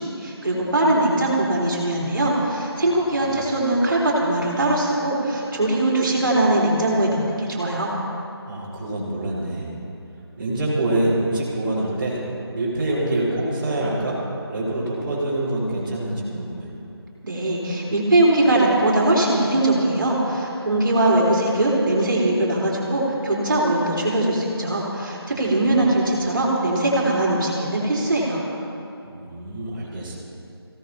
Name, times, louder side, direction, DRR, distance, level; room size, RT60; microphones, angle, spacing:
voice 1, 0.0-7.9 17.2-28.4, right 1 dB, 50° right, -4 dB, 4.0 m, -21 dB
voice 2, 2.8-3.4 8.5-9.7 10.4-12.2 12.5-14.2 14.5-16.7 25.3-25.9 29.0-30.1, right 1 dB, 30° right, -12 dB, 4.5 m, -26 dB
26.0 x 17.0 x 2.9 m, 2.7 s
figure-of-eight pair, 160°, 14 cm